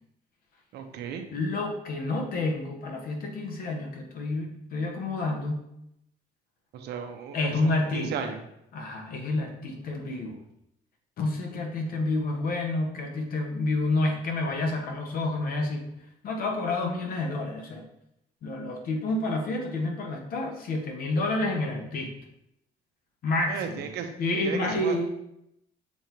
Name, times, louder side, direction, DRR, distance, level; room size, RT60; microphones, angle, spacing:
voice 1, 0.7-1.2 6.7-8.4 11.9-12.0 23.5-24.1 24.4-25.0, right 7 dB, 75° right, 5 dB, 1.0 m, -35 dB
voice 2, 1.3-5.6 7.3-8.3 8.7-10.4 11.2-15.9 16.2-17.8 18.4-22.1 23.2-23.9 24.2-25.1, left 2 dB, 60° left, 2 dB, 1.5 m, -29 dB
7.0 x 3.0 x 5.3 m, 0.80 s
cardioid pair, 110°, 17 cm